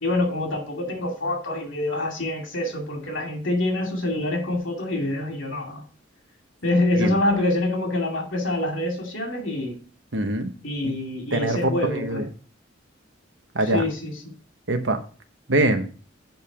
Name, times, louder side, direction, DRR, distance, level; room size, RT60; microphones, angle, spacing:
voice 1, 0.0-5.8 6.6-9.8 10.6-12.3 13.7-14.3, left 1 dB, 75° left, 2.5 m, -26 dB
voice 2, 10.1-10.5 11.3-12.3 13.5-13.8 14.7-15.0 15.5-15.9, right 2 dB, 70° right, 1.1 m, -23 dB
7.1 x 5.3 x 4.9 m
head